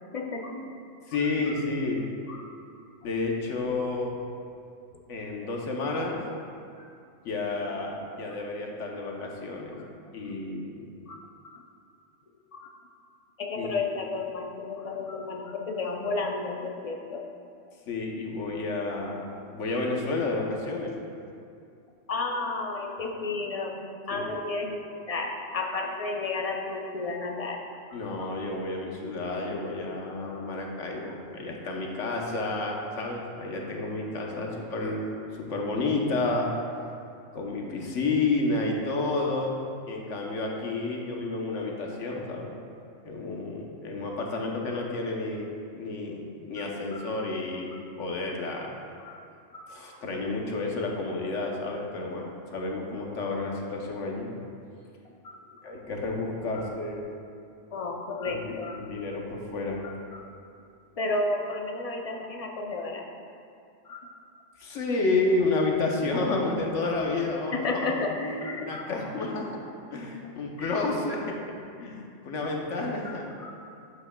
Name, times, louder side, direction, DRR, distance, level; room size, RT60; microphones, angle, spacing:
voice 1, 0.1-0.7 2.3-2.5 6.8-6.9 11.0-11.7 12.5-12.7 13.4-17.3 22.1-24.8 25.1-27.6 28.2-28.3 46.6-46.7 46.9-47.2 49.0-49.2 49.5-49.7 55.2-55.4 56.5-56.7 57.7-58.9 59.8-60.3 61.0-63.0 63.8-64.1 67.5-69.4 70.6-70.8 71.1-71.2 73.0-73.5, left 3 dB, 50° left, 1 dB, 0.4 m, -33 dB
voice 2, 1.1-2.1 3.0-4.2 5.1-6.2 7.2-9.7 10.1-10.9 13.5-13.7 17.9-20.9 24.1-24.3 27.9-35.1 35.3-36.5 37.3-39.6 39.9-42.5 43.0-48.7 49.7-54.3 55.6-57.1 58.2-59.8 64.6-68.1 68.7-69.6 69.9-71.4 71.8-73.3, left 3 dB, 80° left, 0 dB, 1.2 m, -30 dB
8.3 x 7.6 x 2.2 m, 2.4 s
omnidirectional pair, 1.3 m